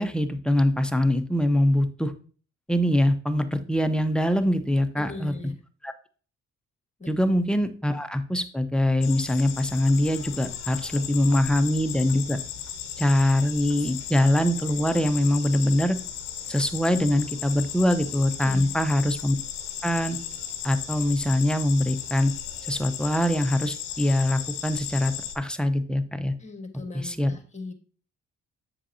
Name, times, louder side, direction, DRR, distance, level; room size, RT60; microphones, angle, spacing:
voice 1, 0.0-2.1 2.7-5.3 5.8-5.9 7.1-12.4 13.0-16.0 16.5-19.3 19.8-20.2 20.6-22.3 22.7-26.3 26.9-27.3, left 1 dB, ahead, 9 dB, 0.8 m, -23 dB
voice 2, 4.9-5.6 7.0-7.1 18.4-18.7 26.4-27.7, left 3 dB, 20° left, 7 dB, 1.6 m, -39 dB
sound 1, 9.0-25.3, left 10 dB, 90° left, 0.6 m, -36 dB
7.5 x 6.7 x 2.8 m, 0.40 s
hypercardioid pair, 50°, 34 cm